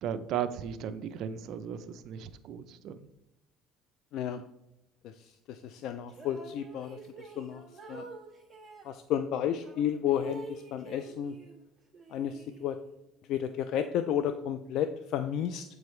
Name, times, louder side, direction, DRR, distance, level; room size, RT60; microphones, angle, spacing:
voice 1, 0.0-3.1, right 8 dB, 60° right, 11 dB, 0.5 m, -36 dB
voice 2, 5.0-7.6 7.9-8.1 8.8-11.4 12.1-12.8 13.3-15.6, left 9 dB, 65° left, 9 dB, 0.4 m, -32 dB
sound 1, 6.1-9.0 9.6-11.6 11.9-13.0, right 3 dB, 10° right, 1.6 m, -48 dB
7.8 x 4.7 x 3.2 m, 0.91 s
cardioid pair, 115°, 0 cm